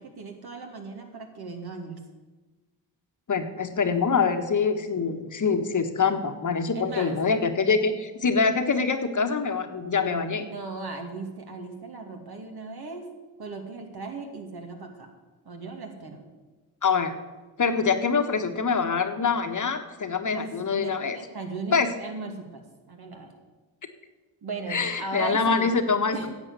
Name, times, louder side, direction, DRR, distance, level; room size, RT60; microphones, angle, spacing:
voice 1, 0.0-2.0 6.7-7.2 7.6-7.8 10.4-13.1 13.4-15.1 15.4-16.3 20.3-22.6 22.9-23.3 24.4-25.7 26.1-26.3, right 4 dB, 55° right, 3 dB, 2.5 m, -37 dB
voice 2, 3.3-10.5 16.8-17.1 17.6-21.2 21.7-21.9 24.7-26.3, left 5 dB, 40° left, 7 dB, 1.4 m, -25 dB
10.5 x 7.6 x 8.2 m, 1.2 s
supercardioid pair, 55°, 46 cm